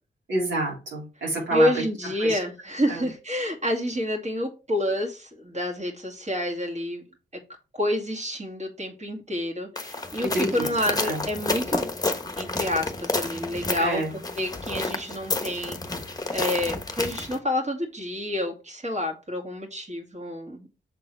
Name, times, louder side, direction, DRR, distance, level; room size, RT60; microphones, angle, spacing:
voice 1, 0.3-1.8 2.2-2.4 2.9-3.0 10.2-11.2 13.8-14.1, right 2 dB, 75° right, -3 dB, 3.4 m, -28 dB
voice 2, 1.5-7.0 7.7-11.9 12.4-14.0 14.3-16.0 16.3-20.7, left 1 dB, 35° right, 1 dB, 2.3 m, -28 dB
sound 1, 9.8-17.4, left 2 dB, 20° left, 1.1 m, -30 dB
6.6 x 3.8 x 4.5 m, 0.32 s
cardioid pair, 70°, 19 cm